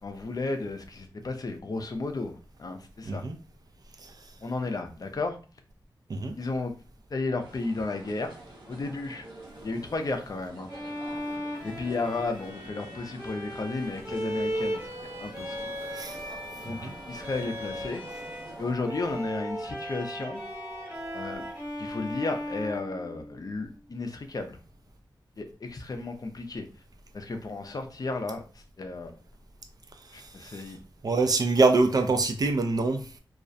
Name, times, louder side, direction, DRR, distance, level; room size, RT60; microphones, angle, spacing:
voice 1, 0.0-3.2 4.4-5.4 6.4-6.7 7.1-8.4 8.7-9.3 9.6-10.7 11.6-14.9 15.2-15.7 16.6-18.0 18.6-20.4 21.1-21.4 21.8-24.6 25.4-26.7 27.1-29.2 30.1-30.8, left 3 dB, 50° left, 0.5 m, -33 dB
sound 1, 7.4-18.7, right 1 dB, 75° right, 0.9 m, -47 dB
Bowed string instrument, 10.7-18.5 18.8-23.6, equal, 20° right, 0.9 m, -37 dB
sound 2, 15.3-21.6, right 1 dB, ahead, 0.6 m, -44 dB
voice 2, 30.0-30.6 31.0-33.2, right 3 dB, 50° right, 0.4 m, -25 dB
2.4 x 2.0 x 2.5 m
wide cardioid pair, 65°, 8 cm